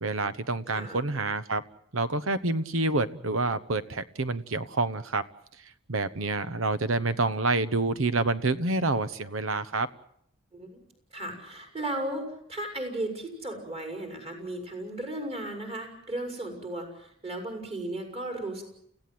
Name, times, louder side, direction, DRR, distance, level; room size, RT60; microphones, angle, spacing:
voice 1, 0.0-1.6 1.9-5.2 5.9-9.9, right 3 dB, 85° right, 15 dB, 1.1 m, -28 dB
voice 2, 0.7-1.0 10.5-10.8 11.1-18.6, right 1 dB, 30° right, 3 dB, 5.9 m, -35 dB
30.0 x 16.0 x 7.8 m, 0.71 s
head